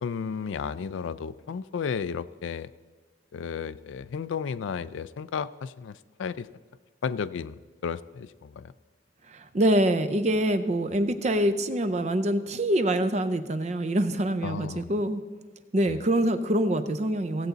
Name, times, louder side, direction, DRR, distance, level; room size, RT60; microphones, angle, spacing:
voice 1, 0.0-2.7 3.3-6.5 7.0-7.6 7.8-8.7 14.4-14.9 15.9-16.0, left 6 dB, 80° left, 16 dB, 0.4 m, -33 dB
voice 2, 9.3-15.2 15.7-17.5, right 1 dB, 35° right, 11 dB, 0.5 m, -25 dB
16.5 x 7.9 x 3.9 m, 1.4 s
head